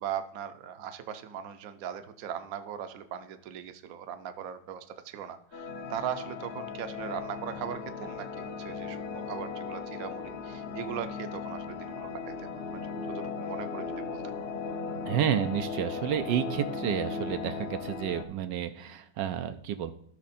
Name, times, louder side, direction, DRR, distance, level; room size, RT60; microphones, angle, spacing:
voice 1, 0.0-12.5 13.1-14.3, right 9 dB, 60° right, 9 dB, 1.1 m, -39 dB
sound 1, 5.5-18.2, left 5 dB, 50° left, 0.7 m, -37 dB
voice 2, 15.0-19.9, right 10 dB, 80° right, 9 dB, 1.3 m, -30 dB
13.0 x 6.1 x 4.2 m, 0.62 s
omnidirectional pair, 2.0 m